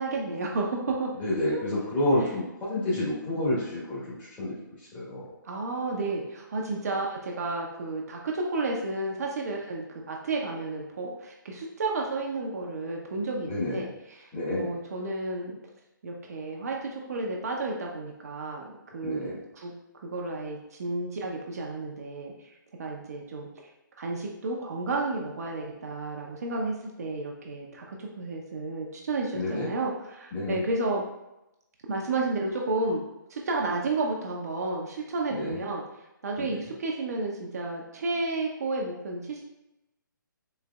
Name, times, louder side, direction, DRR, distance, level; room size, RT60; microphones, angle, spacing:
voice 1, 0.0-1.1 1.5-1.6 5.4-15.5 16.0-19.7 20.0-22.5 22.8-23.5 24.0-31.0 31.9-33.0 33.3-35.8 36.2-39.4, right 2 dB, 50° right, -1 dB, 0.6 m, -32 dB
voice 2, 1.2-4.5 4.9-5.2 13.5-13.8 14.3-14.6 19.0-19.4 29.3-29.7 30.3-30.6 35.3-35.6 36.4-36.5, left 1 dB, 20° left, -8 dB, 1.3 m, -29 dB
4.0 x 3.2 x 2.3 m, 0.92 s
figure-of-eight pair, 140°, 11 cm